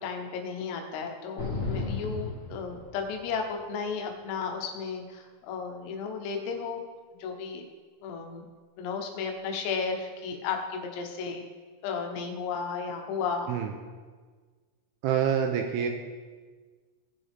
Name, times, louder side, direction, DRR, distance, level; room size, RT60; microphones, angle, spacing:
voice 1, 0.0-6.8 7.2-7.7 8.0-8.5 8.8-11.5 11.8-13.6, left 5 dB, 80° left, 3 dB, 3.7 m, -34 dB
sound 1, 1.4-3.3, left 3 dB, 35° left, 1.5 m, -34 dB
voice 2, 15.0-15.9, right 8 dB, 85° right, 4 dB, 2.8 m, -26 dB
18.0 x 6.8 x 3.5 m, 1.5 s
omnidirectional pair, 5.9 m